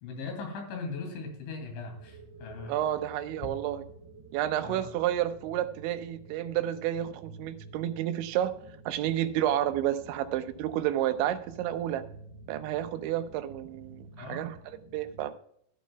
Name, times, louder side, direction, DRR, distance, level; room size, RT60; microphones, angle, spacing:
voice 1, 0.0-2.8 4.6-4.8 14.2-14.5, left 4 dB, 80° left, 3 dB, 5.0 m, -39 dB
sound 1, 1.8-15.3, right 3 dB, 20° right, 2.1 m, -50 dB
voice 2, 2.7-3.8 4.3-8.5 8.9-12.0 12.5-14.6 14.9-15.3, right 12 dB, 85° right, 10 dB, 3.1 m, -30 dB
13.5 x 11.5 x 2.3 m, 0.65 s
omnidirectional pair, 5.3 m